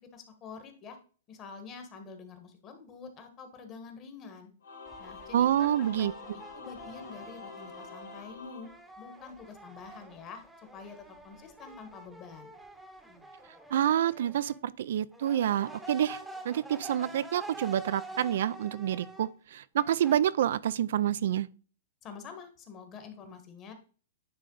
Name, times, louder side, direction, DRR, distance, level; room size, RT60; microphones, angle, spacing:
voice 1, 0.1-1.0 1.3-4.5 5.0-6.1 6.5-10.4 10.7-12.5 22.0-23.7, left 5 dB, 25° left, 1.3 m, -47 dB
Singing / Musical instrument, 4.6-9.5, left 4 dB, 85° left, 2.1 m, -47 dB
sound 1, 4.9-8.3 8.6-14.6 15.1-19.3 19.8-20.2, right 2 dB, 5° right, 0.9 m, -47 dB
voice 2, 5.3-6.1 13.7-16.2 16.5-21.5, right 10 dB, 65° right, 0.3 m, -28 dB
9.7 x 3.2 x 3.9 m
hypercardioid pair, 145°, 0 cm